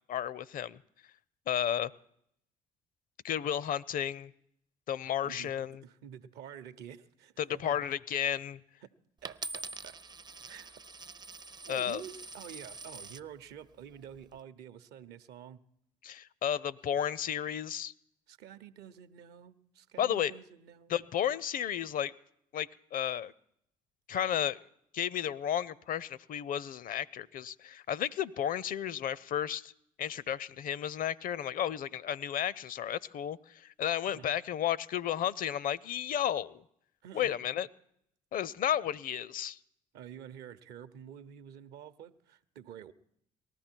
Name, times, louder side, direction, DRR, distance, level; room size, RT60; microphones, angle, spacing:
voice 1, 0.1-0.8 1.5-1.9 3.2-4.3 4.9-5.8 7.4-8.6 11.7-12.0 16.0-17.9 20.0-20.3 20.9-22.1 22.5-23.3 24.1-24.6 24.9-29.7 30.0-36.6 37.1-37.7 38.3-39.6, left 10 dB, 50° left, 23 dB, 0.5 m, -33 dB
voice 2, 5.8-7.8 8.8-8.9 9.2-10.0 10.5-10.8 11.6-15.6 18.3-20.9 34.1-34.4 37.0-37.4 39.9-42.9, right 9 dB, 65° right, 13 dB, 0.7 m, -49 dB
Coin (dropping), 9.2-13.3 14.0-14.4, right 3 dB, 25° right, 0.5 m, -45 dB
19.0 x 13.5 x 4.5 m, 0.72 s
hypercardioid pair, 50°, 18 cm